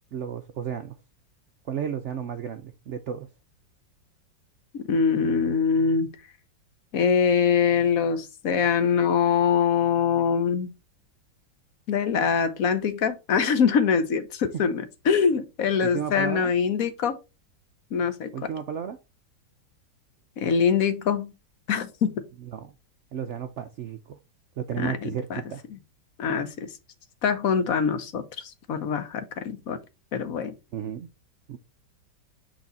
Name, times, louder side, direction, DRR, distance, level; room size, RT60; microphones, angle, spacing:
voice 1, 0.1-0.9 1.7-3.3 15.8-16.5 18.3-19.0 22.5-22.7 23.1-24.2 24.6-25.6 30.7-31.1 31.5-31.6, right 8 dB, 90° right, 0.6 m, -33 dB
voice 2, 4.7-6.1 6.9-10.7 11.9-17.2 17.9-18.3 20.4-21.3 21.7-22.3 24.8-25.4 25.7-25.8 26.2-26.7 27.2-29.8 30.1-30.5, left 6 dB, 55° left, 1.2 m, -24 dB
6.4 x 4.1 x 4.0 m
omnidirectional pair, 1.9 m